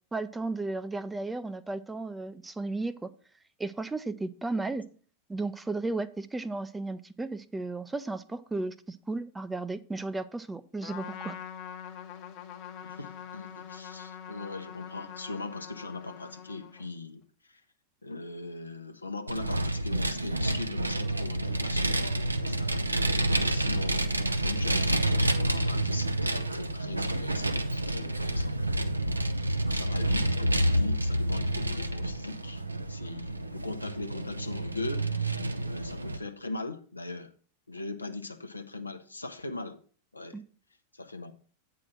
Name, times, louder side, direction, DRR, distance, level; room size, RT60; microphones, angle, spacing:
voice 1, 0.1-3.1 3.6-4.8 5.3-11.4 40.3-40.4, right 3 dB, 10° right, 0.5 m, -34 dB
Trumpet, 10.8-17.0, left 8 dB, 40° left, 1.0 m, -44 dB
voice 2, 12.8-17.2 17.5-17.6 18.0-22.1 22.4-22.7 23.4-28.6 29.7-32.6 32.9-35.1 35.7-37.3 37.7-39.8 40.1-40.4 40.9-41.3, left 3 dB, 80° left, 0.8 m, -40 dB
Vehicle, 19.3-36.2, right 1 dB, 85° right, 0.6 m, -29 dB
8.6 x 4.8 x 6.0 m
figure-of-eight pair, 90°, 0 cm